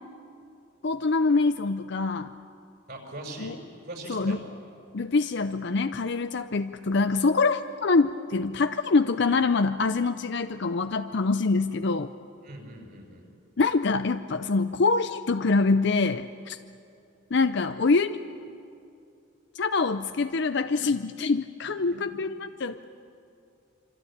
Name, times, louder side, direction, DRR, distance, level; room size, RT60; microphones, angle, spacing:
voice 1, 0.8-2.3 3.4-3.5 4.1-4.4 4.9-12.1 13.6-16.6 17.3-18.2 19.5-22.9, left 3 dB, 55° left, 9 dB, 0.5 m, -25 dB
voice 2, 2.9-3.5 3.8-4.4 12.4-13.2 21.9-22.1, right 1 dB, 50° right, 2 dB, 5.9 m, -40 dB
26.0 x 25.5 x 8.7 m, 2.5 s
head